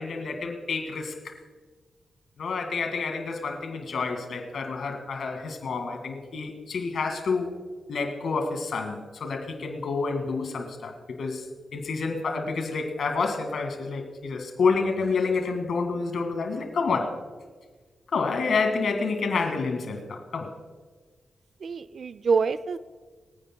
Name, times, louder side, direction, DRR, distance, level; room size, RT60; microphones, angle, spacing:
voice 1, 0.0-1.3 2.4-7.5 7.9-11.5 11.7-17.2 18.1-20.5, left 4 dB, 75° left, 4 dB, 2.0 m, -28 dB
voice 2, 21.6-22.8, right 5 dB, 65° right, 14 dB, 0.4 m, -26 dB
24.0 x 9.4 x 2.2 m, 1.4 s
cardioid pair, 50°, 0 cm